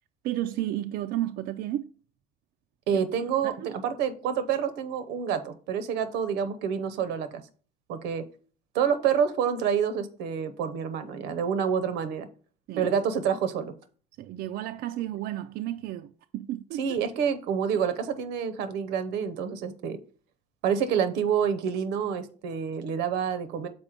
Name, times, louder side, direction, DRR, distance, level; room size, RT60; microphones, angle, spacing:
voice 1, 0.2-1.9 2.9-3.7 12.7-12.9 14.2-16.8, right 13 dB, 70° right, 0.4 m, -33 dB
voice 2, 2.9-7.4 7.9-8.2 8.7-12.3 12.8-13.7 16.8-20.0 20.6-23.7, right 7 dB, 90° right, 0.8 m, -28 dB
6.0 x 4.3 x 5.0 m
cardioid pair, 110°, 17 cm